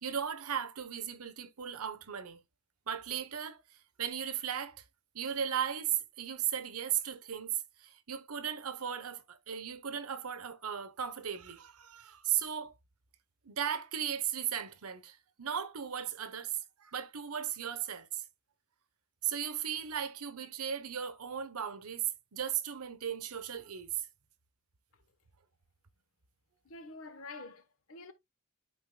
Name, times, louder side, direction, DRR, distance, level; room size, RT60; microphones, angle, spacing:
voice 1, 0.0-2.4 2.9-4.8 5.1-12.7 13.4-18.2 19.2-22.0 22.3-24.1, right 9 dB, 85° right, 1.0 m, -36 dB
voice 2, 26.6-28.1, left 3 dB, 70° left, 1.1 m, -47 dB
12.5 x 4.2 x 2.2 m
head